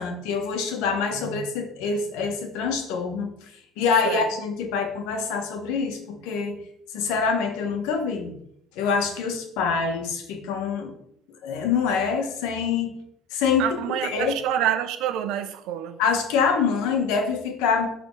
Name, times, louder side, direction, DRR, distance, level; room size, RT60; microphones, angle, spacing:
voice 1, 0.0-3.3 3.8-6.6 6.9-8.3 8.7-10.9 11.4-12.9 13.3-14.4 16.0-17.9, left 5 dB, 85° left, 4 dB, 1.7 m, -25 dB
voice 2, 13.6-16.0, right 10 dB, 65° right, 9 dB, 1.0 m, -27 dB
11.5 x 4.1 x 4.8 m, 0.71 s
cardioid pair, 175°, 0 cm